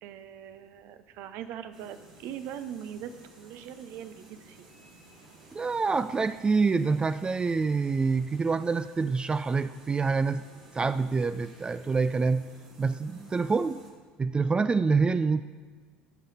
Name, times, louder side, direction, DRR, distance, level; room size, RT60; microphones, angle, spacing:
voice 1, 0.0-4.7, right 9 dB, 60° right, 11 dB, 0.6 m, -41 dB
sound 1, 1.7-13.9, right 2 dB, 85° right, 1.6 m, -54 dB
voice 2, 5.5-10.4 10.7-12.5 12.8-13.8 14.2-15.4, right 4 dB, 20° right, 13 dB, 0.3 m, -26 dB
13.5 x 6.5 x 4.2 m, 1.5 s
hypercardioid pair, 65°, 4 cm